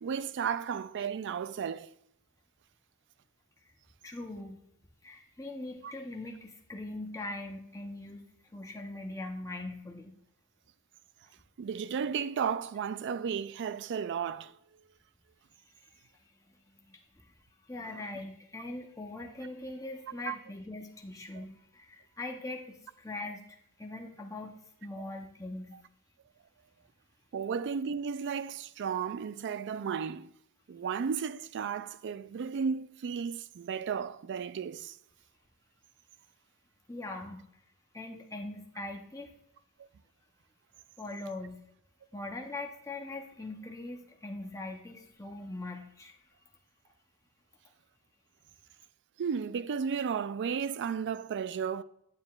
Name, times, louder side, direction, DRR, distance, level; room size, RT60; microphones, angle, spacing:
voice 1, 0.0-1.9 5.8-5.9 11.6-14.5 17.9-18.0 20.3-20.4 21.3-21.4 27.3-30.3 30.7-34.9 39.8-39.9 49.2-51.8, right 6 dB, 55° right, 0.4 m, -34 dB
voice 2, 4.0-4.6 5.0-8.2 8.5-10.1 15.7-17.3 17.7-25.8 36.9-37.4 37.9-39.3 41.0-41.6 42.1-46.1, left 2 dB, 15° left, 0.7 m, -42 dB
9.4 x 9.3 x 2.4 m
head